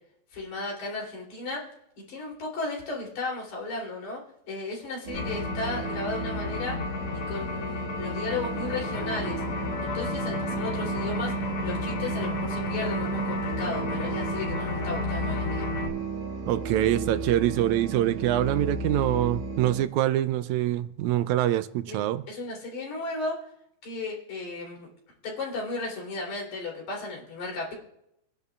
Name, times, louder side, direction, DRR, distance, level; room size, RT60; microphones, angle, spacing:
voice 1, 0.3-1.6 2.1-4.2 4.5-6.8 7.1-9.4 9.8-15.7 21.9-22.0 22.3-23.5 23.8-24.9 25.2-27.7, left 3 dB, 75° left, -2 dB, 4.6 m, -34 dB
sound 1, 5.1-15.9, left 4 dB, 55° left, 2.1 m, -33 dB
sound 2, 5.1-19.8, right 4 dB, 60° right, 2.3 m, -34 dB
sound 3, 8.5-17.5, right 3 dB, 35° right, 1.2 m, -44 dB
voice 2, 16.5-22.2, right 13 dB, 80° right, 12 dB, 1.9 m, -25 dB
26.0 x 10.5 x 2.4 m, 0.80 s
omnidirectional pair, 3.4 m